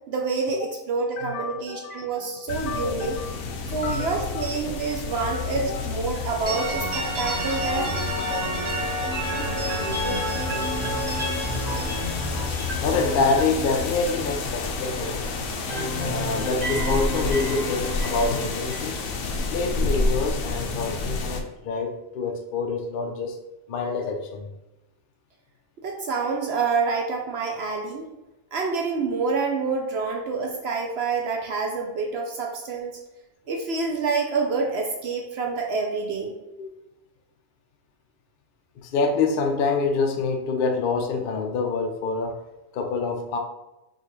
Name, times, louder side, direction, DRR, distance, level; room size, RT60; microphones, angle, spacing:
voice 1, 0.1-3.2 3.7-7.9 25.8-28.1 28.5-33.0 33.5-36.4, right 4 dB, 65° right, 1 dB, 0.7 m, -27 dB
voice 2, 1.2-4.5 5.2-5.9 6.2-6.3 10.0-10.5 12.8-15.2 15.9-18.9 19.5-23.4 23.7-24.5 36.6-36.7 38.8-42.4 42.7-43.4, left 4 dB, 60° left, 4 dB, 0.5 m, -27 dB
sound 1, 2.5-21.4, left 3 dB, 80° left, 1.0 m, -30 dB
sound 2, 6.5-15.2 15.5-19.6, equal, 35° right, 1.2 m, -30 dB
5.1 x 2.4 x 3.0 m, 0.97 s
omnidirectional pair, 1.4 m